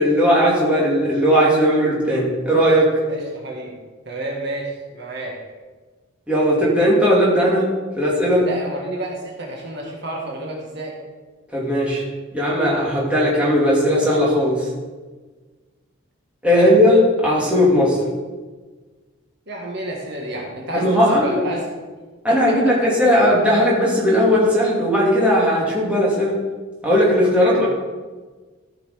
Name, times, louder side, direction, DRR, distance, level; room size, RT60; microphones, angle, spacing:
voice 1, 0.0-2.9 6.3-7.7 8.0-8.5 11.5-12.0 12.3-14.7 16.4-18.0 20.7-21.4 22.2-26.3 26.8-27.7, equal, 5° right, -6 dB, 2.6 m, -17 dB
voice 2, 3.1-3.7 4.1-5.4 8.4-11.0 16.5-16.7 19.5-21.7 22.3-22.7 27.4-27.7, right 1 dB, 50° right, -1 dB, 1.8 m, -30 dB
14.5 x 5.7 x 5.1 m, 1.4 s
head